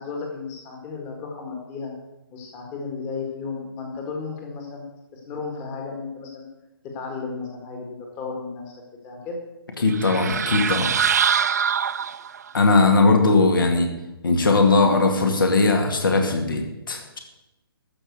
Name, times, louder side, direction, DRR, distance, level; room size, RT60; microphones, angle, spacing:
voice 1, 0.0-1.9 2.3-4.8 5.1-6.5 6.9-8.6 9.0-9.4, left 4 dB, 20° left, 1 dB, 1.8 m, -34 dB
voice 2, 9.8-10.9 12.5-13.9 14.2-17.2, left 3 dB, 60° left, 4 dB, 2.1 m, -19 dB
sound 1, 9.9-12.5, right 7 dB, 45° right, 0.4 m, -23 dB
13.5 x 5.5 x 8.0 m, 0.96 s
figure-of-eight pair, 135°, 13 cm